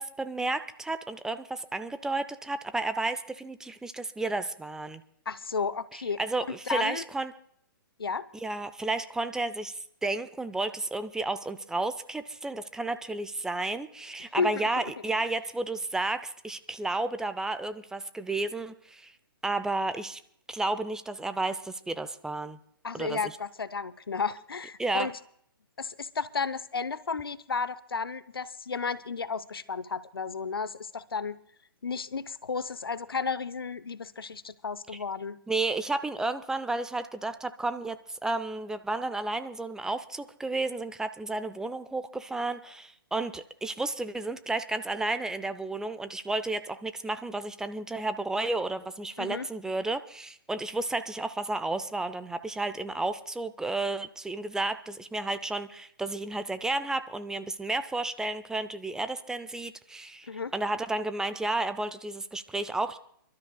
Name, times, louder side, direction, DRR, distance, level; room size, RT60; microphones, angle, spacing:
voice 1, 0.0-5.0 5.9-7.3 8.3-19.1 19.4-20.2 20.5-22.6 22.9-23.3 24.8-25.1 35.5-63.0, right 2 dB, 5° right, 11 dB, 0.5 m, -32 dB
voice 2, 5.3-6.2 6.5-7.0 8.0-8.3 14.4-14.5 14.8-14.9 22.8-25.1 25.8-31.4 31.8-35.4 49.2-49.5 60.3-60.5, left 5 dB, 80° left, 16 dB, 0.7 m, -33 dB
29.0 x 12.5 x 2.2 m, 0.65 s
figure-of-eight pair, 125°, 12 cm